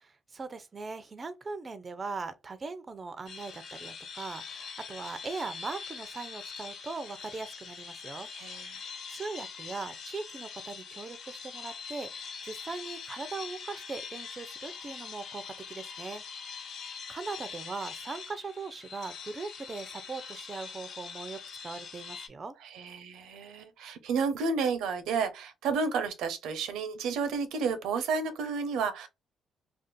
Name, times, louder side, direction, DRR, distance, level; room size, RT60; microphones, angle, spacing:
voice 1, 0.0-8.3 8.5-16.2 16.7-16.8 17.1-22.5, right 4 dB, 35° right, 0.4 m, -40 dB
sound 1, 3.3-22.3, left 5 dB, 65° left, 0.9 m, -43 dB
voice 2, 8.3-8.8 22.7-29.1, right 5 dB, 85° right, 0.6 m, -31 dB
2.5 x 2.3 x 3.6 m
cardioid pair, 90°, 0 cm